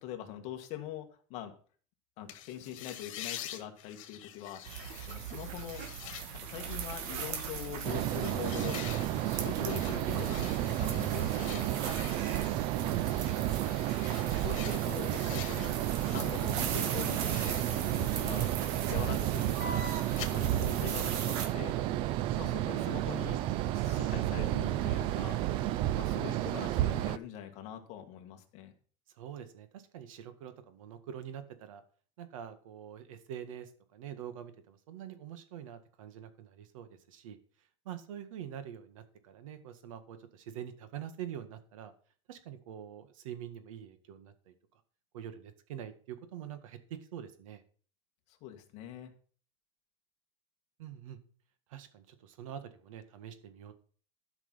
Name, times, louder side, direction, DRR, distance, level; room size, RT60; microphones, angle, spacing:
voice 1, 0.0-1.5 2.2-4.6 5.0-5.8 6.3-8.8 9.1-11.7 14.3-15.8 16.1-18.5 18.9-19.8 20.2-21.7 22.3-23.4 23.7-25.4 25.9-28.7 48.3-49.1, left 11 dB, 40° left, 5 dB, 1.7 m, -43 dB
sound 1, 2.3-16.5 16.8-20.3, left 12 dB, 75° left, 1.7 m, -48 dB
sound 2, 4.6-21.5, right 7 dB, 50° right, 1.9 m, -40 dB
sound 3, 7.8-27.2, right 14 dB, 30° right, 0.4 m, -32 dB
voice 2, 12.3-13.6 23.9-24.2 29.2-31.8 32.2-37.4 37.9-41.9 42.3-44.5 45.1-47.6 50.8-51.2 51.7-53.7, right 10 dB, 80° right, 10 dB, 1.8 m, -45 dB
12.0 x 6.1 x 5.7 m, 0.43 s
supercardioid pair, 170°, 17 cm